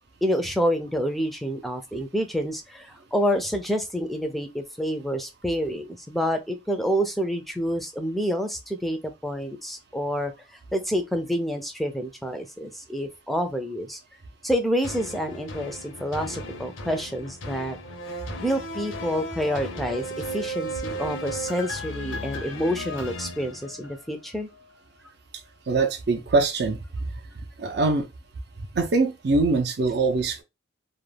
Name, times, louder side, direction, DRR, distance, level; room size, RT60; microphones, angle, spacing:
voice 1, 0.2-10.3 10.7-14.0 14.4-17.8 18.4-24.5, equal, ahead, 0.4 m, -28 dB
sound 1, 14.8-24.2 24.7-24.8, equal, 85° left, 0.6 m, -35 dB
voice 2, 25.7-26.8 27.6-28.1 28.7-30.4, right 3 dB, 55° right, 0.5 m, -23 dB
2.3 x 2.2 x 3.2 m
head